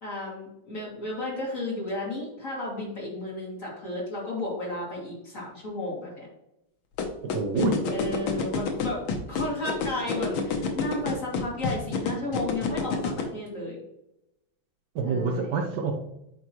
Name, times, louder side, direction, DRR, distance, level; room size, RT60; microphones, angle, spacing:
voice 1, 0.0-6.3 7.9-13.8 15.0-15.6, left 2 dB, 40° left, -5 dB, 2.8 m, -33 dB
sound 1, 7.0-13.2, left 6 dB, 85° left, 1.7 m, -27 dB
voice 2, 7.2-7.8 14.9-15.9, right 3 dB, 65° right, 2 dB, 1.3 m, -26 dB
9.5 x 3.6 x 3.0 m, 0.85 s
omnidirectional pair, 2.2 m